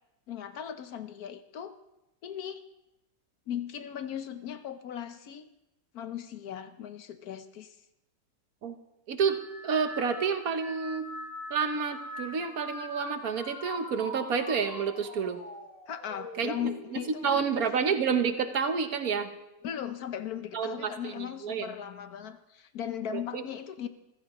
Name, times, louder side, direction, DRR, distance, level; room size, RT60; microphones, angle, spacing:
voice 1, 0.3-1.8 2.2-2.6 3.5-5.5 5.9-7.8 15.9-17.7 19.6-23.9, left 9 dB, 70° left, 10 dB, 1.3 m, -38 dB
voice 2, 9.1-11.1 11.5-15.4 16.4-16.7 17.2-19.3 20.5-21.7 23.1-23.4, right 6 dB, 65° right, 8 dB, 1.4 m, -29 dB
sound 1, 9.2-18.9 19.3-19.9 20.9-21.2, equal, 50° left, 3.1 m, -44 dB
27.0 x 15.0 x 3.0 m, 0.91 s
omnidirectional pair, 1.7 m